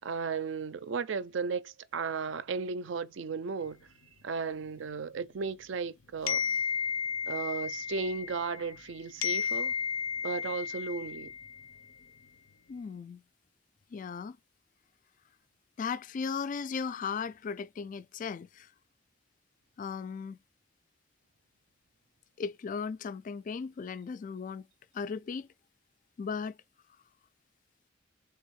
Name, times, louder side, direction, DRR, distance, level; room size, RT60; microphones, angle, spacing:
voice 1, 0.0-3.8 4.2-6.4 7.3-9.7 10.2-11.3, right 5 dB, 65° right, 0.5 m, -35 dB
sound 1, 6.3-8.9 9.2-11.8, left 6 dB, 75° left, 0.6 m, -33 dB
voice 2, 12.7-13.2 13.9-14.4 15.8-18.7 19.8-20.4 22.4-24.7 24.9-25.5 26.2-26.6, left 5 dB, 40° left, 0.3 m, -36 dB
3.5 x 3.4 x 3.1 m
head